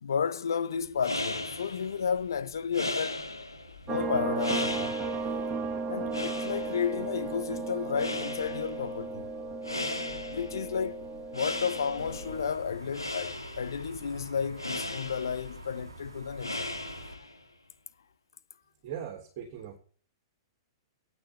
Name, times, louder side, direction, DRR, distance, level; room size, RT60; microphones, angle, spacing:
voice 1, 0.0-3.2 3.9-4.9 5.9-9.3 10.3-11.1 11.3-16.6, left 7 dB, 65° left, 0.9 m, -32 dB
sound 1, 0.8-17.4, left 2 dB, 90° left, 1.8 m, -38 dB
sound 2, 3.9-12.4, right 4 dB, 20° right, 1.6 m, -35 dB
sound 3, 12.0-17.2, right 2 dB, 80° right, 1.4 m, -47 dB
voice 2, 18.8-19.8, right 9 dB, 40° right, 3.2 m, -39 dB
9.0 x 6.7 x 8.0 m
figure-of-eight pair, 105°, 2 cm